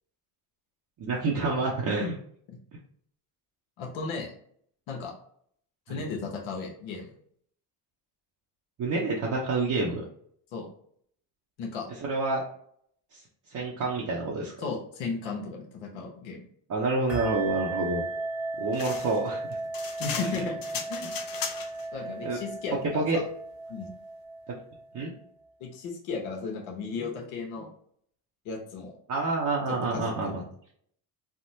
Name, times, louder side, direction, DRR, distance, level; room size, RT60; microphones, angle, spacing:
voice 1, 1.0-2.2 5.9-6.0 8.8-10.0 12.0-12.4 13.5-14.5 16.7-18.0 18.6-19.4 20.2-20.3 22.0-22.4 22.9-23.2 24.5-24.6 24.9-25.1 29.1-30.4, right 3 dB, 40° right, -3 dB, 0.7 m, -28 dB
voice 2, 3.8-4.3 4.9-5.1 5.9-7.1 10.5-10.7 11.6-11.9 14.6-16.5 20.0-21.1 21.9-23.2 23.7-23.9 25.6-27.7 28.4-28.9 29.7-30.4, left 4 dB, 75° left, -1 dB, 1.0 m, -35 dB
sound 1, 17.1-25.2, right 2 dB, 5° right, 0.9 m, -36 dB
sound 2, 18.7-21.9, left 6 dB, 45° left, 0.6 m, -37 dB
3.5 x 2.0 x 2.7 m, 0.63 s
supercardioid pair, 75°, 48 cm